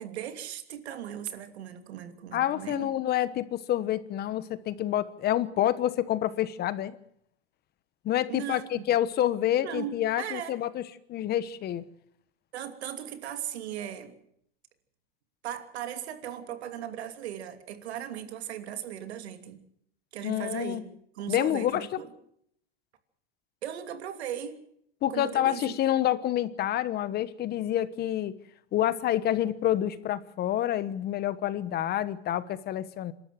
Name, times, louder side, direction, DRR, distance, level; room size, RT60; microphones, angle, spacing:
voice 1, 0.0-2.9 8.3-8.9 9.6-10.6 12.5-14.1 15.4-19.6 20.1-22.1 23.6-24.6 25.1-25.7, right 10 dB, 90° right, 8 dB, 2.8 m, -38 dB
voice 2, 2.3-7.0 8.0-10.8 11.1-11.9 20.2-20.8 21.3-22.0 25.0-28.3 28.7-33.1, left 12 dB, 30° left, 15 dB, 1.2 m, -28 dB
27.5 x 12.5 x 7.6 m, 0.70 s
supercardioid pair, 145°, 32 cm